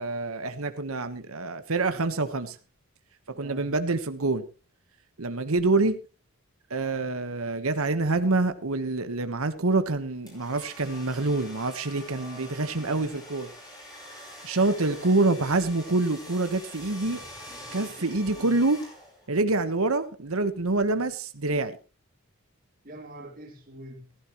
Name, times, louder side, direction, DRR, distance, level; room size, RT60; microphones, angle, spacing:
voice 1, 0.0-2.6 3.3-4.4 5.2-6.0 6.7-13.5 14.4-17.2 17.7-18.8 19.3-21.8, right 2 dB, 75° right, 1.2 m, -26 dB
voice 2, 3.3-3.7 12.1-13.1 17.5-18.5 22.8-24.2, equal, 40° right, 3.1 m, -46 dB
sound 1, 10.3-19.4, left 1 dB, 20° left, 6.5 m, -45 dB
15.5 x 15.5 x 3.0 m
head